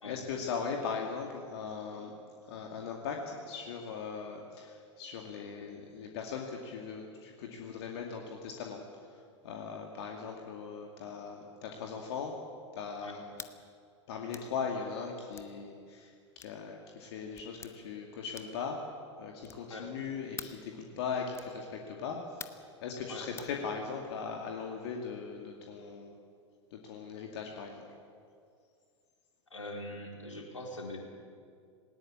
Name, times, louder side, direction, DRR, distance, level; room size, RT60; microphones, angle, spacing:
voice 1, 0.0-2.1 2.5-12.4 12.7-13.2 14.1-16.1 16.4-18.8 19.2-22.4 22.8-26.1 26.7-27.9, left 5 dB, 55° left, 1 dB, 2.4 m, -39 dB
sound 1, 13.3-13.6 14.3-14.5 15.3-15.5 16.4-16.6 17.4-17.7 18.3-18.7 19.4-19.7 20.4-20.6 21.3-21.6 22.4-22.7 23.4-23.6, left 6 dB, 15° left, 1.1 m, -46 dB
voice 2, 29.5-31.1, left 1 dB, 80° left, 0 dB, 4.2 m, -42 dB
19.0 x 19.0 x 8.7 m, 2.2 s
figure-of-eight pair, 95°, 16 cm